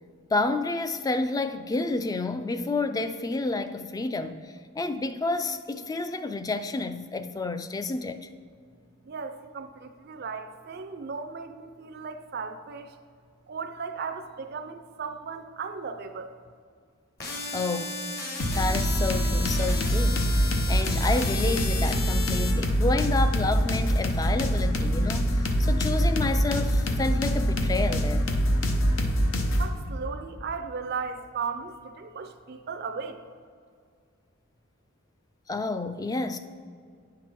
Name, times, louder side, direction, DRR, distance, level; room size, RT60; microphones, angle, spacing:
voice 1, 0.3-8.3 17.5-18.0 18.6-20.3 20.7-28.3 35.5-36.4, left 3 dB, 20° left, 0.3 m, -29 dB
voice 2, 9.1-12.9 13.5-16.3 29.5-33.2, right 5 dB, 50° right, 0.4 m, -36 dB
sound 1, 17.2-22.5, left 3 dB, 50° left, 1.4 m, -35 dB
sound 2, 18.4-29.7, equal, 85° left, 0.8 m, -24 dB
9.6 x 5.9 x 4.5 m
head